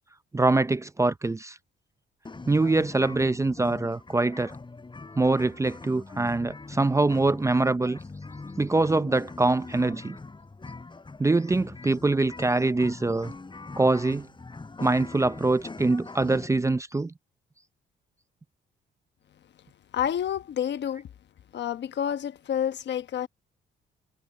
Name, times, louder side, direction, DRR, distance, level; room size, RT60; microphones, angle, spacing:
voice 1, 0.3-1.6 2.5-4.5 5.2-8.0 8.6-10.2 11.2-13.3 13.8-14.3 14.8-17.1, right 2 dB, 15° right, 0.5 m, -24 dB
sound 1, 2.3-16.5, left 3 dB, 25° left, 6.3 m, -42 dB
voice 2, 19.9-21.1 21.5-23.3, left 9 dB, 60° left, 1.2 m, -29 dB
cardioid pair, 90°, 20 cm